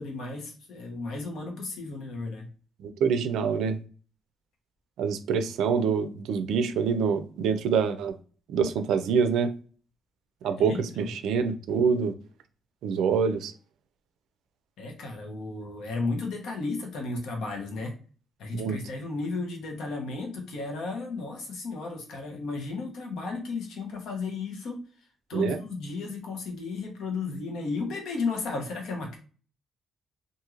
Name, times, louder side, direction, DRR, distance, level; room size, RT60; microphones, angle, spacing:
voice 1, 0.0-2.5 10.6-11.1 14.8-17.9 18.4-24.8 25.3-29.2, left 3 dB, 75° left, 0.9 m, -34 dB
voice 2, 2.8-3.8 5.0-8.1 8.5-9.5 10.4-12.1 12.8-13.5 18.5-18.8 25.3-25.6, right 6 dB, 80° right, 0.4 m, -26 dB
3.0 x 2.5 x 2.4 m
cardioid pair, 90°, 0 cm